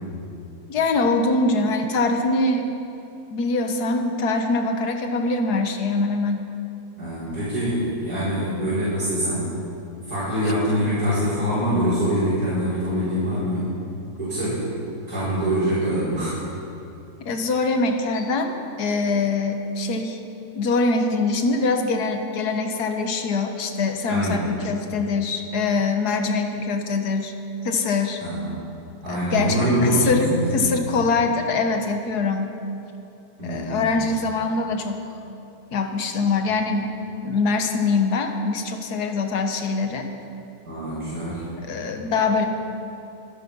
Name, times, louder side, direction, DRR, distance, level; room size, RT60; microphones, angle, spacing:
voice 1, 0.7-2.7 3.3-6.4 17.3-20.2 20.6-27.3 27.6-28.2 29.1-29.6 29.8-32.5 33.4-35.0 35.7-36.9 37.2-40.1 41.6-42.5, left 3 dB, 75° left, 5 dB, 1.8 m, -23 dB
voice 2, 7.0-9.5 10.1-13.7 14.2-14.7 15.1-16.4 24.1-24.5 28.2-28.5 29.0-30.7 33.4-33.9 40.7-41.5, equal, 75° right, -13 dB, 5.7 m, -24 dB
24.0 x 11.0 x 5.5 m, 2.8 s
omnidirectional pair, 1.7 m